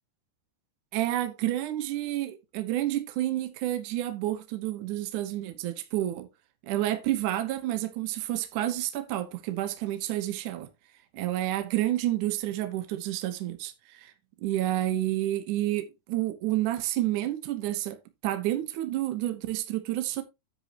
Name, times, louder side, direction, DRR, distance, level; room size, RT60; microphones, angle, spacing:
voice 1, 0.9-6.3 6.6-10.7 11.1-14.1 14.4-20.2, right 14 dB, 70° right, 2.2 m, -30 dB
9.7 x 8.2 x 2.9 m
omnidirectional pair, 4.3 m